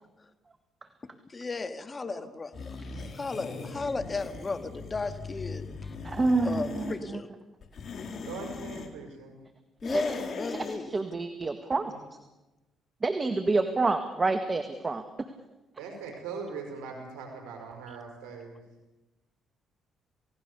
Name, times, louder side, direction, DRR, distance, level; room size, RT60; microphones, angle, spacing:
voice 1, 1.3-2.8 3.0-6.0 6.4-7.3 9.8-10.9, left 3 dB, 30° left, 9 dB, 2.0 m, -35 dB
sound 1, 2.5-7.0 7.6-8.9 9.8-10.8, left 4 dB, 55° left, 3.9 m, -39 dB
voice 2, 2.9-3.6 8.3-9.4 11.8-12.0 15.8-18.6, right 5 dB, 80° right, 3 dB, 5.4 m, -41 dB
voice 3, 6.0-6.9 9.9-10.0 10.5-10.6 10.9-11.9 13.0-15.0, right 3 dB, 30° right, 8 dB, 1.9 m, -27 dB
29.0 x 18.0 x 7.0 m, 1.1 s
supercardioid pair, 65°, 0 cm